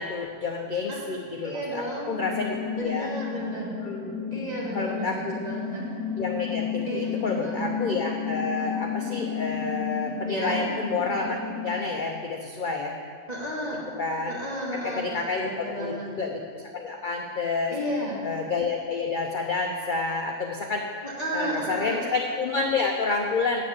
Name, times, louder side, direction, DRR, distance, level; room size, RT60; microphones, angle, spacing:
voice 1, 0.0-3.1 3.8-4.1 4.7-5.4 6.2-13.0 14.0-14.4 14.7-17.7 18.2-20.8 21.3-23.7, left 4 dB, 45° left, 2 dB, 0.7 m, -29 dB
voice 2, 1.4-2.1 2.7-3.7 4.3-5.8 6.8-7.7 10.2-10.6 13.3-13.8 14.3-15.1 15.4-16.1 17.7-18.2 21.0-22.0, right 1 dB, 25° right, -6 dB, 2.7 m, -32 dB
sound 1, 2.0-11.8, left 6 dB, 60° right, 2.4 m, -32 dB
9.3 x 7.8 x 7.3 m, 2.2 s
omnidirectional pair, 1.6 m